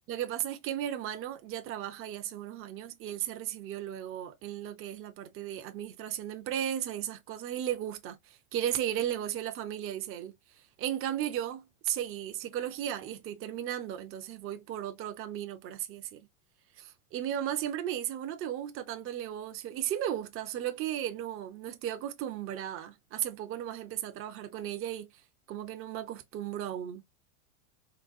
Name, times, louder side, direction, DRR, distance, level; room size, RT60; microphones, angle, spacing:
voice 1, 0.1-10.4 10.8-16.3 16.8-25.1 25.5-27.0, right 11 dB, 30° right, 0.7 m, -35 dB
4.0 x 2.0 x 2.4 m
hypercardioid pair, 115°, 42 cm